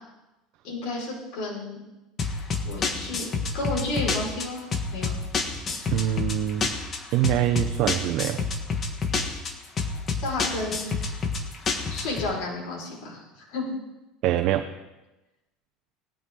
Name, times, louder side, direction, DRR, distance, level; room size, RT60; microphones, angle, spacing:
voice 1, 0.6-1.8 2.6-3.3 3.5-4.6 4.9-5.1 10.2-10.9 11.9-13.7, left 2 dB, 65° left, -4 dB, 5.1 m, -31 dB
sound 1, 2.2-12.3, left 4 dB, 30° left, 1.4 m, -29 dB
voice 2, 5.9-6.7 7.1-8.4 14.2-14.7, right 12 dB, 55° right, 4 dB, 0.8 m, -24 dB
18.5 x 11.5 x 3.9 m, 1.0 s
supercardioid pair, 135°, 0 cm